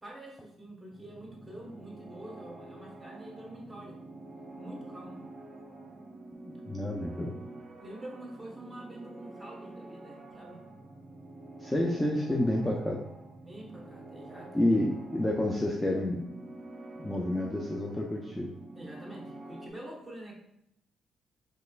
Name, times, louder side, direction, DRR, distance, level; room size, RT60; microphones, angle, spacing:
voice 1, 0.0-4.0 4.6-5.2 7.8-10.6 13.4-14.7 18.7-20.3, right 1 dB, 10° right, -3 dB, 1.1 m, -46 dB
sound 1, 0.9-19.7, right 2 dB, 35° right, 1.0 m, -47 dB
voice 2, 6.4-7.4 11.6-13.0 14.5-16.2 17.0-18.5, left 1 dB, 10° left, -1 dB, 0.4 m, -29 dB
4.1 x 3.2 x 2.3 m, 0.78 s
cardioid pair, 90°, 0 cm